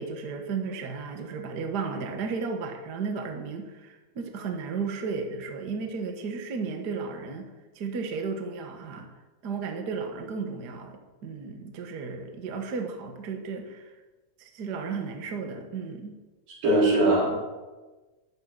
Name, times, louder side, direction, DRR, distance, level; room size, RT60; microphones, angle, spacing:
voice 1, 0.0-7.5 7.7-9.1 9.4-13.9 14.4-16.2, right 5 dB, 80° right, 4 dB, 0.9 m, -34 dB
voice 2, 16.5-17.6, right 1 dB, 65° right, -4 dB, 5.8 m, -22 dB
12.5 x 7.9 x 8.8 m, 1.2 s
omnidirectional pair, 4.4 m